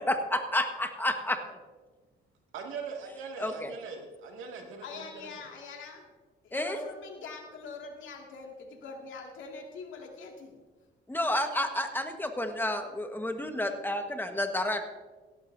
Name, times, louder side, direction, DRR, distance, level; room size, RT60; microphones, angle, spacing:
voice 1, 0.0-1.6 3.4-3.7 6.5-6.9 11.1-14.8, left 1 dB, 10° left, 6 dB, 1.3 m, -30 dB
voice 2, 2.5-5.1, right 5 dB, 85° right, 2 dB, 2.1 m, -41 dB
voice 3, 4.8-6.0 6.4-10.6, left 4 dB, 75° left, 1 dB, 2.2 m, -43 dB
16.5 x 12.0 x 2.7 m, 1.3 s
cardioid pair, 90°, 20 cm